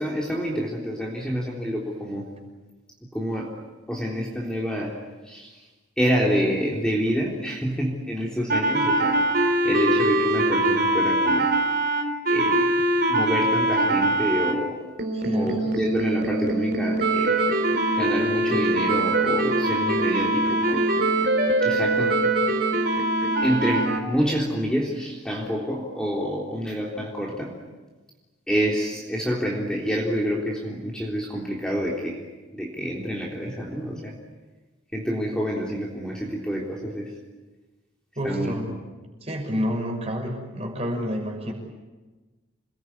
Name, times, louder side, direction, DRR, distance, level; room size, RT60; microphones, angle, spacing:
voice 1, 0.0-2.3 3.1-3.5 3.9-5.0 5.3-5.6 6.0-9.2 9.6-11.5 12.3-12.8 13.1-14.8 15.3-17.4 18.0-20.9 21.6-22.2 23.4-27.5 28.5-32.2 32.5-34.1 34.9-37.1 38.2-38.8, equal, 5° left, -3 dB, 3.6 m, -27 dB
sound 1, 8.5-14.5 15.0-24.0, right 1 dB, 50° right, 3.9 m, -22 dB
voice 2, 15.1-15.7 38.2-38.7 39.2-41.5, equal, 30° right, 2 dB, 6.2 m, -29 dB
28.5 x 21.0 x 9.8 m, 1.2 s
head